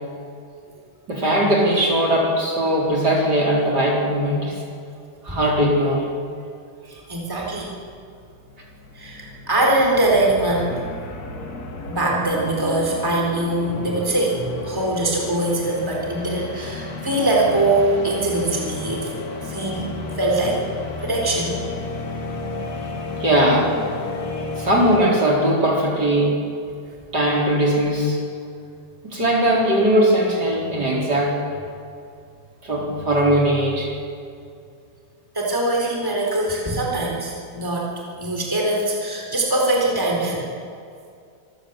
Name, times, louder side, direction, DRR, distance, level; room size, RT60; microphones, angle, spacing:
voice 1, 1.1-4.6 5.2-6.1 22.8-23.8 24.2-26.4 27.1-28.2 29.1-31.3 32.6-33.9, right 1 dB, 45° right, -3 dB, 5.0 m, -19 dB
voice 2, 6.8-7.7 8.9-10.8 11.9-19.1 19.4-20.6 21.0-21.6 35.3-40.5, right 1 dB, 10° right, -2 dB, 3.8 m, -22 dB
sound 1, 7.9-8.0 8.2-25.6, left 2 dB, 45° left, 2.2 m, -33 dB
26.0 x 15.5 x 8.1 m, 2.4 s
omnidirectional pair, 2.4 m